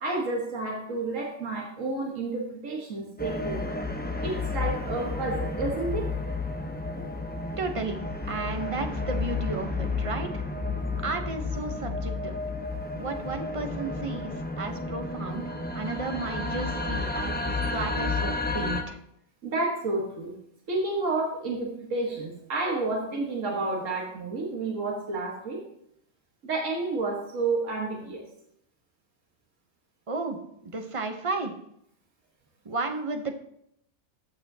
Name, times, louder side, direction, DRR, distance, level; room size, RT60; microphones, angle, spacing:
voice 1, 0.0-3.8 4.2-6.1 7.0-7.1 19.4-20.3 20.7-25.6 26.4-28.2, right 3 dB, 75° right, -2 dB, 1.8 m, -30 dB
sound 1, 3.2-18.8, left 3 dB, 15° left, 0.4 m, -31 dB
voice 2, 7.6-8.0 8.3-10.5 11.0-12.4 13.0-19.0 30.1-31.5 32.6-33.4, right 3 dB, 30° right, 5 dB, 0.7 m, -33 dB
14.5 x 6.8 x 2.8 m, 0.75 s
omnidirectional pair, 1.4 m